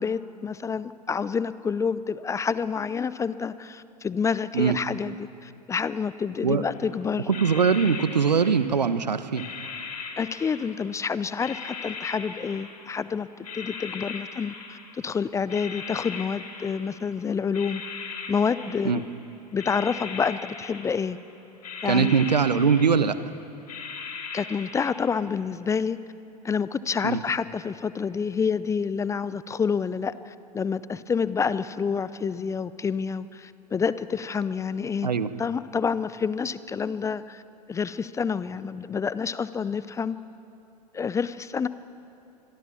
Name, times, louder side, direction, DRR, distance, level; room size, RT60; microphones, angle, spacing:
voice 1, 0.0-7.3 10.2-17.8 18.3-19.0 19.5-21.2 21.8-22.2 24.3-26.0 26.4-35.1 35.4-37.4 37.7-40.2 40.9-41.7, left 6 dB, 15° left, 16 dB, 0.6 m, -28 dB
sound 1, 6.7-6.9 7.3-8.9 9.3-11.0 11.4-13.1 13.4-15.1 15.5-17.1 17.5-19.2 19.5-21.3 21.6-23.3 23.7-25.0, left 5 dB, 65° left, 3.7 m, -39 dB
voice 2, 7.3-9.4 18.8-19.0 21.8-23.2 27.0-27.2 35.0-35.3, right 6 dB, 80° right, 13 dB, 1.1 m, -22 dB
25.0 x 22.0 x 7.2 m, 2.7 s
figure-of-eight pair, 90°, 21 cm